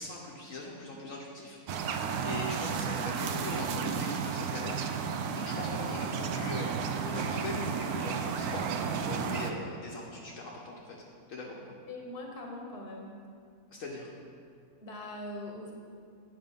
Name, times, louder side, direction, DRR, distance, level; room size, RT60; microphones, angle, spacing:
voice 1, 0.0-1.6 2.2-5.0 5.3-6.7 7.0-11.0 11.3-11.7 13.7-14.1, left 2 dB, 65° left, -3 dB, 1.2 m, -40 dB
sound 1, 1.7-9.5, right 6 dB, 85° right, 1.1 m, -33 dB
voice 2, 11.9-13.1 14.8-15.7, left 1 dB, 40° left, 0 dB, 1.3 m, -41 dB
9.1 x 5.5 x 5.1 m, 2.3 s
omnidirectional pair, 1.6 m